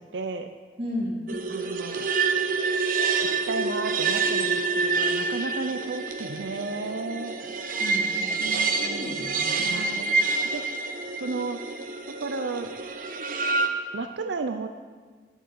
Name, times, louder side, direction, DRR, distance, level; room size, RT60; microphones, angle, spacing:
voice 1, 0.1-0.5 1.5-2.1 3.2-7.3 8.4-9.2 9.5-10.7 11.2-11.6 12.2-12.7 13.9-14.7, right 3 dB, 85° right, 7 dB, 0.6 m, -33 dB
voice 2, 0.8-1.2 7.8-9.8, left 1 dB, 30° right, -2 dB, 2.4 m, -34 dB
sound 1, 1.3-13.7, right 4 dB, 50° right, 0.9 m, -27 dB
10.5 x 7.5 x 8.4 m, 1.5 s
head